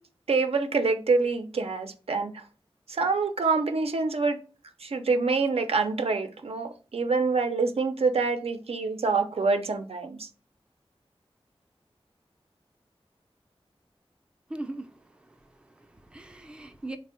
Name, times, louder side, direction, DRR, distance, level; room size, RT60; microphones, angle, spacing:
voice 1, 0.3-2.3 2.9-4.4 4.8-10.3, right 4 dB, 70° right, 0.4 m, -26 dB
voice 2, 14.5-17.0, right 2 dB, 10° right, 0.4 m, -41 dB
3.4 x 2.0 x 3.7 m
wide cardioid pair, 65°, 10 cm